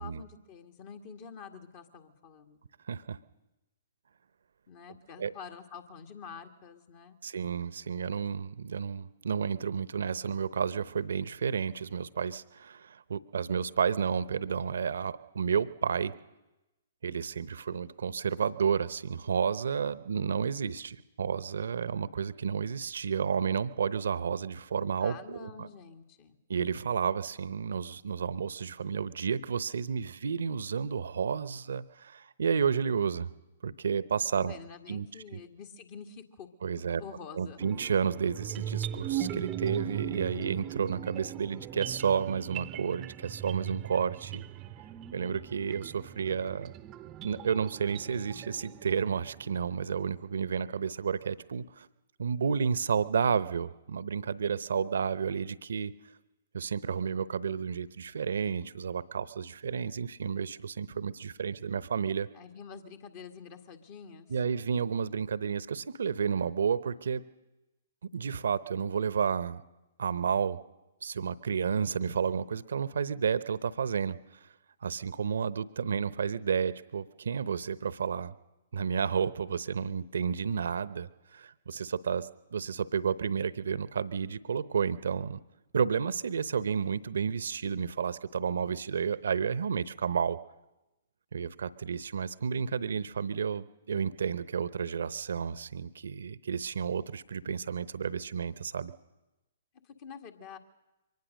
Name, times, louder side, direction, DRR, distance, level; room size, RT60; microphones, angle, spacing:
voice 1, 0.0-2.6 4.7-7.2 25.0-26.4 34.4-36.5 36.9-37.6 62.3-64.3 99.8-100.6, left 6 dB, 45° left, 6 dB, 1.8 m, -47 dB
voice 2, 2.9-3.2 5.2-5.3 7.2-16.1 17.0-25.7 26.5-33.3 33.6-34.5 34.9-35.1 35.3-35.4 36.6-37.0 37.4-44.4 45.1-46.7 47.2-51.9 52.2-55.9 56.5-62.3 64.3-67.2 68.1-69.6 70.0-70.6 71.0-74.2 74.8-78.3 78.7-85.4 85.7-90.4 91.3-98.9, right 6 dB, 70° right, 16 dB, 0.8 m, -31 dB
sound 1, 37.6-49.8, right 11 dB, 25° right, 0.7 m, -39 dB
23.5 x 19.0 x 6.5 m, 1.0 s
figure-of-eight pair, 120°, 0 cm